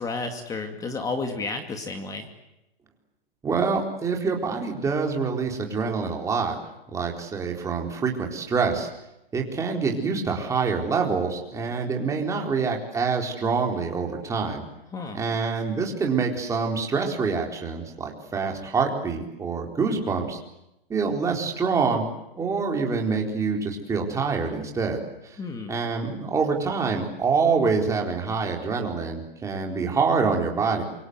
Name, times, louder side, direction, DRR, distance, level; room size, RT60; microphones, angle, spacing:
voice 1, 0.0-2.3 14.9-15.2 25.4-25.8, left 3 dB, 10° left, 6 dB, 2.5 m, -31 dB
voice 2, 3.4-6.6 6.9-8.9 9.3-14.6 15.1-20.4 20.9-22.0 22.4-25.4 25.7-30.8, right 5 dB, 10° right, 1 dB, 4.2 m, -26 dB
27.0 x 25.0 x 8.2 m, 0.86 s
hypercardioid pair, 150°, 30 cm